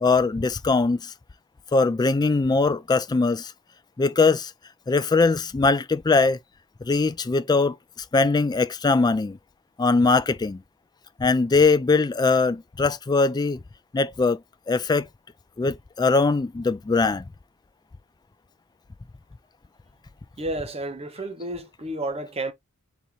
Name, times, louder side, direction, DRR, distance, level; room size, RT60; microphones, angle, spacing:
voice 1, 0.0-1.1 1.7-3.5 4.0-4.5 4.9-6.4 6.8-7.8 8.1-9.4 9.8-10.6 11.2-13.6 13.9-14.4 14.7-15.1 15.6-17.2, left 3 dB, 20° left, 0.3 m, -21 dB
voice 2, 20.4-22.5, right 2 dB, 30° right, 0.9 m, -31 dB
4.1 x 3.6 x 2.9 m
head